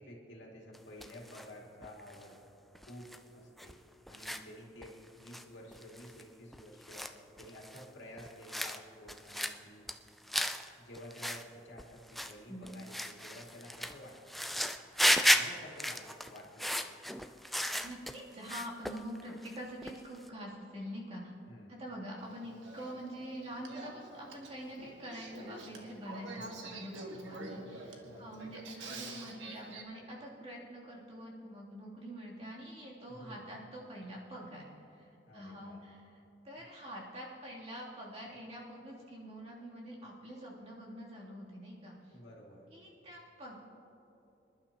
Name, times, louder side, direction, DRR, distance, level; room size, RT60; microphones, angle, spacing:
voice 1, 0.0-2.4 2.9-3.8 4.1-7.1 7.4-9.9 10.8-14.4 15.0-16.9 21.5-21.8 26.3-26.7 28.0-28.5 33.1-33.6 35.2-35.8 42.1-42.7, equal, 75° left, -2 dB, 2.4 m, -51 dB
sound 1, 0.7-1.5 1.8-2.2 2.8-3.2 3.6-3.7 4.1-4.4 4.8-4.9 5.3-5.4 5.7-6.2 6.5-7.8 8.2-8.8 9.1-9.6 9.9-10.7 10.9-11.4 11.8-12.3 12.6-18.2 18.5-19.6 19.8-20.3, equal, ahead, 0.4 m, -34 dB
voice 2, 17.8-21.3 21.7-36.2 36.4-42.2 42.7-43.6, equal, 35° right, -6 dB, 3.0 m, -45 dB
Male speech man speaking / Female speech woman speaking / Conversation, 22.2-29.8, right 2 dB, 85° right, 1.6 m, -47 dB
25.5 x 11.5 x 3.0 m, 2.9 s
head